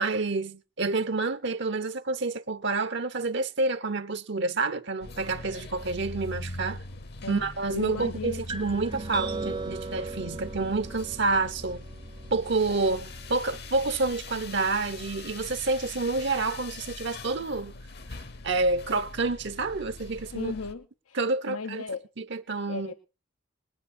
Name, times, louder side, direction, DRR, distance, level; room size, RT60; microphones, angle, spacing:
voice 1, 0.0-6.8 7.3-11.8 12.3-17.7 18.4-20.5 21.1-21.8 22.2-22.9, right 3 dB, 55° right, 0.8 m, -28 dB
sound 1, 5.0-20.7, left 2 dB, 50° left, 1.0 m, -42 dB
voice 2, 7.7-8.4 20.3-21.2 21.5-22.1 22.7-22.9, left 4 dB, 85° left, 0.9 m, -36 dB
sound 2, 8.5-14.1, right 3 dB, 25° right, 0.6 m, -38 dB
20.5 x 9.0 x 4.3 m
head